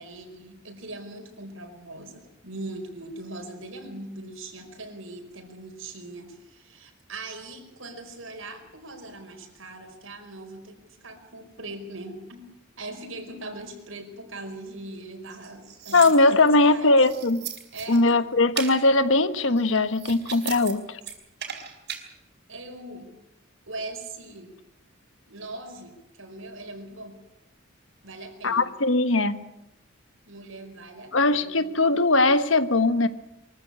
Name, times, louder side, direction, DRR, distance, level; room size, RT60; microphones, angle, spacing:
voice 1, 0.0-12.4 12.7-16.0 16.3-17.0 17.7-18.1 22.5-23.1 23.7-24.6 25.3-27.2 28.0-28.7 30.3-31.7, right 2 dB, 75° right, 5 dB, 4.9 m, -40 dB
sound 1, 15.3-16.5 17.0-18.1 18.5-18.8 19.5-20.7 21.0-22.0, right 8 dB, 60° right, 4.6 m, -37 dB
voice 2, 15.9-17.4 17.9-21.0 28.4-29.4 31.1-33.1, left 2 dB, 70° left, 12 dB, 1.3 m, -20 dB
23.5 x 14.5 x 9.9 m, 0.89 s
head